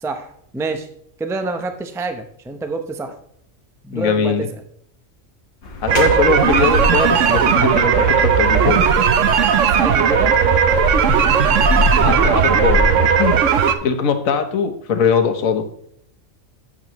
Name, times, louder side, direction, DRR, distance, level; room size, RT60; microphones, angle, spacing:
voice 1, 0.0-0.9 1.2-3.2 3.8-4.5 9.7-10.3, right 3 dB, 5° right, 7 dB, 0.3 m, -27 dB
voice 2, 3.9-4.5 5.8-8.8 12.0-12.9 13.2-13.4 13.8-15.7, left 5 dB, 80° left, 7 dB, 1.4 m, -20 dB
sound 1, 5.6-12.9, left 2 dB, 55° left, 1.5 m, -25 dB
sound 2, 5.9-13.8, right 7 dB, 70° right, 1.0 m, -16 dB
8.8 x 7.3 x 3.0 m, 0.69 s
omnidirectional pair, 1.4 m